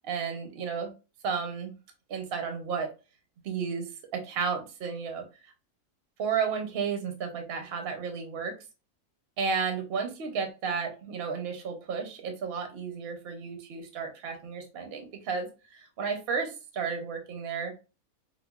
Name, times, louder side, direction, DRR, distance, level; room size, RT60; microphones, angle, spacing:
voice 1, 0.0-0.9 1.2-1.7 2.1-2.9 3.4-3.9 4.1-5.2 6.2-8.5 9.4-17.7, right 5 dB, 60° right, 5 dB, 0.6 m, -32 dB
5.0 x 2.0 x 2.3 m, 0.31 s
omnidirectional pair, 1.7 m